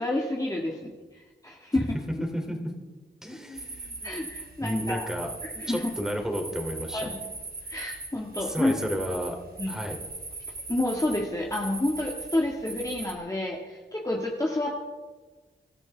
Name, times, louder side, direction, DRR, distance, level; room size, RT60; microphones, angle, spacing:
voice 1, 0.0-1.9 4.0-5.1 5.4-5.9 6.9-7.1 7.7-8.7 9.6-9.8 10.7-14.7, left 1 dB, 15° left, -2 dB, 2.0 m, -29 dB
voice 2, 2.3-2.7 3.2-4.2 4.6-5.3 5.7-7.1 8.4-9.4 9.7-10.0, equal, 5° right, 2 dB, 3.2 m, -32 dB
sound 1, 3.5-13.1, right 3 dB, 50° right, 2.7 m, -40 dB
25.5 x 13.5 x 3.6 m, 1.3 s
wide cardioid pair, 85°, 20 cm